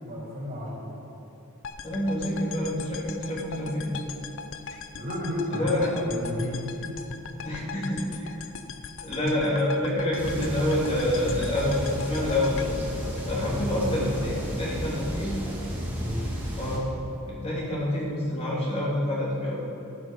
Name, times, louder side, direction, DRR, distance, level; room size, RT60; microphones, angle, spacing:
voice 1, 0.1-0.9 4.9-7.0 7.5-7.7 13.3-14.4 15.9-16.2, left 1 dB, 40° right, -5 dB, 3.5 m, -33 dB
sound 1, 1.6-13.8, left 6 dB, 60° left, 0.7 m, -40 dB
voice 2, 1.8-3.9 5.5-6.0 7.4-8.0 9.0-12.7 13.2-15.3 16.5-17.0 17.3-19.6, left 1 dB, 30° left, -6 dB, 2.8 m, -27 dB
sound 2, 10.2-16.8, equal, 10° right, 2.3 m, -33 dB
12.5 x 12.0 x 5.2 m, 2.8 s
head